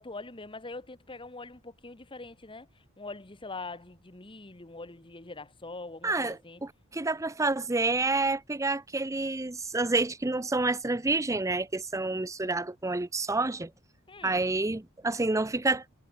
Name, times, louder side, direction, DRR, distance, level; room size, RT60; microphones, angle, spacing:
voice 1, 0.0-2.7 3.0-6.6 14.1-14.4, left 3 dB, 25° left, 1.4 m, -43 dB
voice 2, 6.0-6.4 6.6-13.7 14.2-15.8, right 2 dB, 15° right, 0.6 m, -28 dB
head